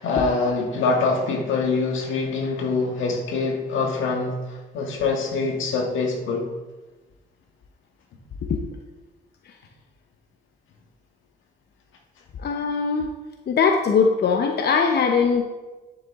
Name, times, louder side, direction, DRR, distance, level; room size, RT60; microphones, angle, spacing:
voice 1, 0.0-6.5, left 4 dB, 80° left, 1 dB, 1.7 m, -24 dB
voice 2, 12.4-13.1 13.5-15.5, left 5 dB, 55° left, 3 dB, 0.8 m, -20 dB
10.5 x 7.0 x 3.6 m, 1.2 s
cardioid pair, 90°, 20 cm